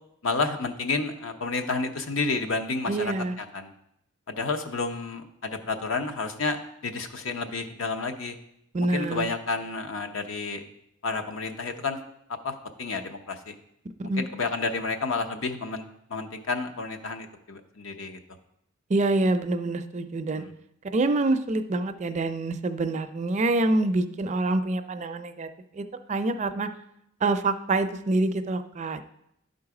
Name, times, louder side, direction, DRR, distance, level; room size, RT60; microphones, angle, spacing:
voice 1, 0.2-3.7 4.3-6.6 6.8-8.4 8.9-10.6 11.0-12.0 12.4-13.5 14.2-18.2 20.3-20.5, left 3 dB, 70° left, 7 dB, 0.8 m, -30 dB
voice 2, 2.9-3.3 8.7-9.3 14.0-14.2 18.9-20.4 20.9-25.5 25.7-26.7 27.2-29.0, right 2 dB, 35° right, 9 dB, 0.4 m, -26 dB
11.5 x 4.0 x 4.8 m, 0.78 s
head